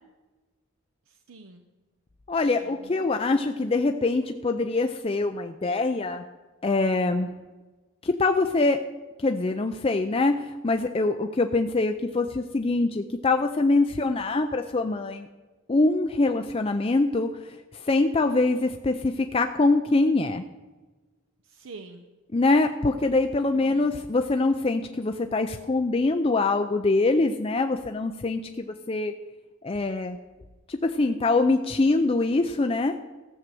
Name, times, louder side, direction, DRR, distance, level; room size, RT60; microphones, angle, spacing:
voice 1, 1.1-1.6 2.6-3.1 21.4-22.0 23.5-23.9, right 3 dB, 80° right, 6 dB, 0.8 m, -46 dB
voice 2, 2.3-6.2 6.6-7.3 8.0-8.8 9.2-15.3 15.7-20.4 22.3-29.1 29.6-30.2 30.7-33.0, left 3 dB, 25° left, 6 dB, 0.4 m, -24 dB
14.5 x 6.5 x 7.6 m, 1.2 s
head